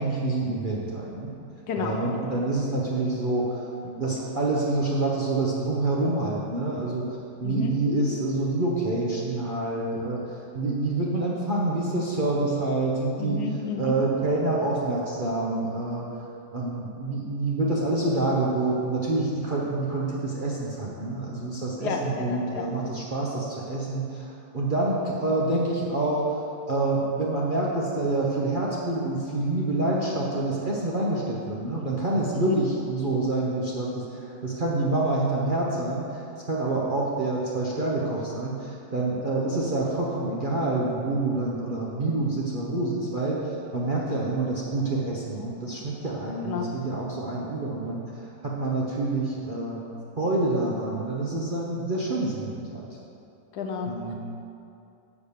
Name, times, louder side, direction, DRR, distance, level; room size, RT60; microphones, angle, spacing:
voice 1, 0.0-1.3 1.8-7.0 7.4-10.2 10.5-13.4 13.8-16.1 16.5-26.4 26.7-36.1 36.5-43.4 43.7-49.9 50.2-52.9 53.9-54.1, right 2 dB, 50° right, -5 dB, 0.6 m, -27 dB
voice 2, 1.7-2.0 7.4-7.8 13.2-14.0 21.8-22.7 32.3-32.6 46.4-46.7 53.5-53.9, left 5 dB, 65° left, 2 dB, 1.3 m, -31 dB
7.2 x 4.9 x 6.5 m, 2.6 s
omnidirectional pair, 2.0 m